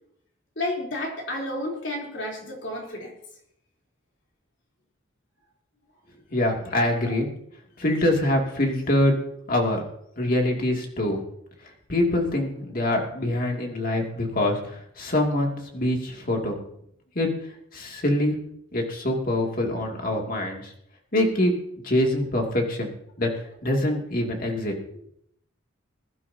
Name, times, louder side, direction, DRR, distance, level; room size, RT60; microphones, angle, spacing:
voice 1, 0.6-3.1 6.7-7.1, left 1 dB, 60° left, -1 dB, 3.7 m, -32 dB
voice 2, 6.3-7.3 7.8-9.1 9.5-9.8 10.2-11.2 11.9-16.6 17.1-17.3 17.7-18.4 18.7-20.7 21.1-21.6 21.8-22.9 23.2-23.3 23.6-24.7, left 1 dB, 45° left, 1 dB, 2.6 m, -24 dB
22.0 x 11.5 x 2.9 m, 0.71 s
head